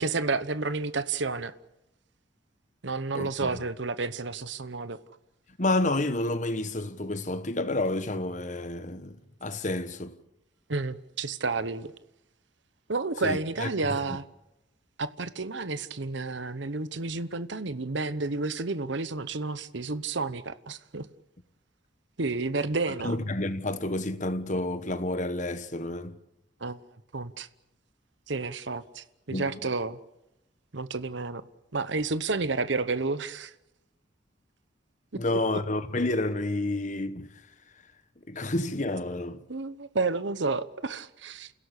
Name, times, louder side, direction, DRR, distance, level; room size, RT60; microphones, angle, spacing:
voice 1, 0.0-1.5 2.8-5.0 10.7-11.9 12.9-14.3 15.0-21.1 22.2-23.2 26.6-26.8 27.1-27.5 28.3-30.0 30.7-31.4 31.7-33.5 35.3-35.6 38.4-38.5 39.5-41.5, right 3 dB, 65° right, 1.0 m, -31 dB
voice 2, 5.6-10.2 13.2-13.7 23.0-26.2 29.3-29.5 35.2-37.3 38.3-39.4, left 2 dB, 40° left, 1.3 m, -29 dB
29.0 x 16.5 x 8.4 m
head